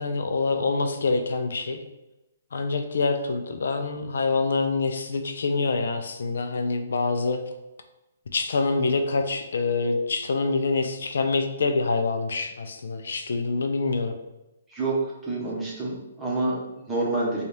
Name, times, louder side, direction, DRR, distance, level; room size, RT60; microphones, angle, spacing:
voice 1, 0.0-1.8 2.5-7.4 8.3-14.1, left 3 dB, 80° left, 6 dB, 0.4 m, -26 dB
voice 2, 14.7-17.4, right 2 dB, 10° right, -6 dB, 0.9 m, -28 dB
4.0 x 2.3 x 3.2 m, 0.94 s
hypercardioid pair, 165°, 0 cm